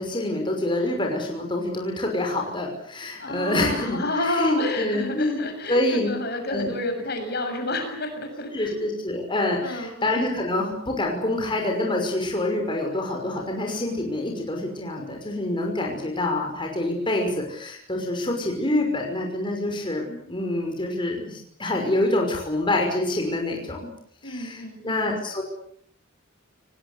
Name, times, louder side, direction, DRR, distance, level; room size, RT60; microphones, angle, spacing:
voice 1, 0.0-5.4 5.7-6.1 6.5-6.7 8.5-23.9 24.2-25.4, left 1 dB, 25° left, 1 dB, 5.6 m, -26 dB
voice 2, 3.2-8.8 9.6-10.2 24.2-25.1, left 1 dB, 50° left, 6 dB, 7.0 m, -30 dB
29.5 x 19.5 x 8.3 m, 0.66 s
head